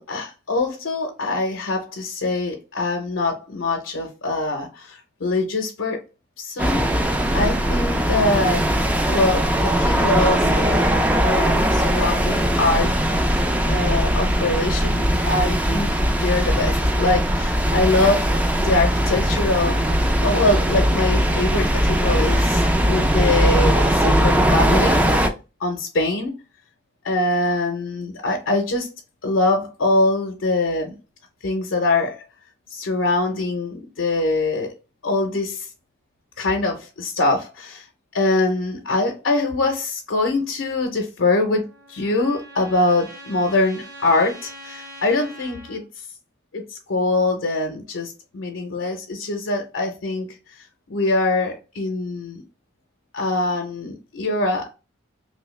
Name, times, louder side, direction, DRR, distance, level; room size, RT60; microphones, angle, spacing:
voice 1, 0.0-6.0 6.4-8.7 9.1-13.0 13.7-15.9 16.2-18.3 18.6-19.9 20.2-25.3 25.6-26.4 27.0-28.9 29.2-30.9 31.4-32.2 32.7-34.7 35.0-35.7 36.4-37.8 38.1-45.8 46.5-46.6 46.9-50.4 50.9-52.4 53.1-54.7, left 2 dB, 85° left, 0.6 m, -23 dB
sound 1, 6.6-25.3, equal, 5° right, 0.3 m, -20 dB
Trumpet, 41.3-45.8, equal, 45° right, 1.3 m, -42 dB
3.1 x 2.7 x 3.1 m
head